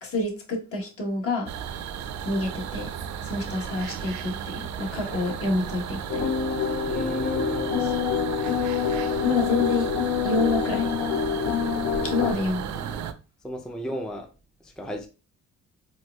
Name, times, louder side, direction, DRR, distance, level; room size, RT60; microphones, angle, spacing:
voice 1, 0.0-1.5 2.2-2.9 3.3-6.3 7.8-7.9 9.2-9.9 10.2-10.9 12.0-12.9, left 3 dB, 50° left, 1.1 m, -28 dB
sound 1, 1.5-13.1, right 8 dB, 70° right, 0.5 m, -34 dB
sound 2, 3.2-4.1 4.7-5.9, left 2 dB, 30° left, 1.0 m, -48 dB
sound 3, 6.1-12.3, left 7 dB, 65° left, 0.5 m, -26 dB
voice 2, 6.9-7.7 9.3-9.4 12.2-12.4 13.4-14.3 14.6-15.1, equal, ahead, 0.4 m, -35 dB
4.3 x 2.4 x 2.3 m
cardioid pair, 90°, 30 cm